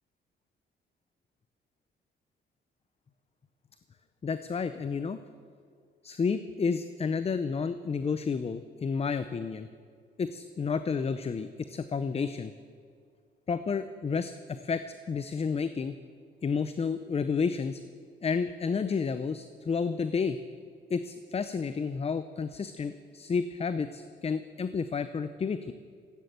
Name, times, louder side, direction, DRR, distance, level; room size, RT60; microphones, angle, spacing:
voice 1, 4.2-5.2 6.0-9.7 10.2-12.5 13.5-15.9 16.4-17.8 18.2-20.4 20.9-25.7, left 5 dB, 30° left, 12 dB, 0.6 m, -31 dB
15.0 x 9.8 x 8.1 m, 2.1 s
cardioid pair, 90°, 20 cm